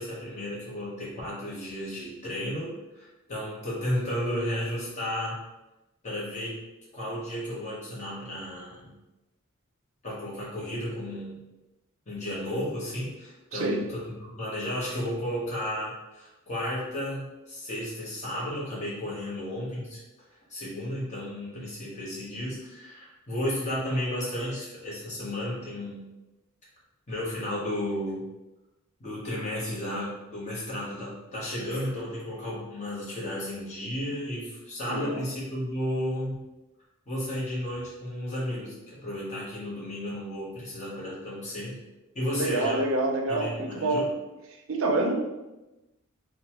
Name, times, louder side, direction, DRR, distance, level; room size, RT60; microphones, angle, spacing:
voice 1, 0.0-5.4 6.0-6.6 6.9-8.9 10.0-11.4 12.1-20.0 20.3-26.0 27.1-28.2 29.0-36.4 37.1-41.8 42.1-42.8 43.3-44.1, left 1 dB, 30° left, -7 dB, 1.0 m, -33 dB
voice 2, 34.9-35.2 42.4-44.1 44.7-45.1, right 2 dB, 60° right, 2 dB, 0.5 m, -27 dB
2.9 x 2.2 x 2.9 m, 1.0 s
head